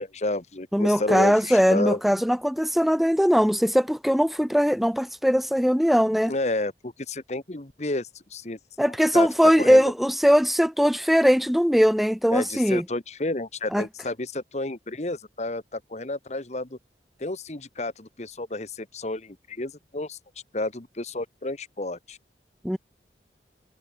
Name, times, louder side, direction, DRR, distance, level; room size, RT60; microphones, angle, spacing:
voice 1, 0.0-2.0 6.2-8.6 8.9-9.3 9.6-9.9 12.3-16.8 17.2-20.2 20.5-22.2, left 2 dB, 40° left, 1.3 m, -31 dB
voice 2, 0.7-6.3 8.8-12.8 13.7-13.8 22.6-22.8, equal, ahead, 0.7 m, -20 dB
head